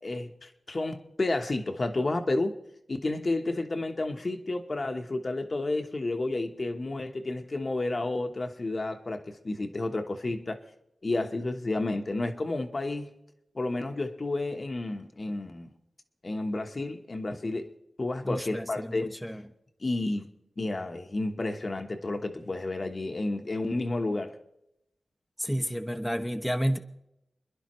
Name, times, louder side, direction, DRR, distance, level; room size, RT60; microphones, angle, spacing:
voice 1, 0.0-2.6 2.9-10.6 11.0-13.1 13.5-15.7 16.2-17.7 18.0-19.1 19.8-20.2 20.6-24.4, left 2 dB, 45° left, 1.1 m, -31 dB
voice 2, 18.2-19.4 25.4-26.8, equal, ahead, 0.8 m, -31 dB
29.0 x 10.5 x 3.1 m
cardioid pair, 60°, 0 cm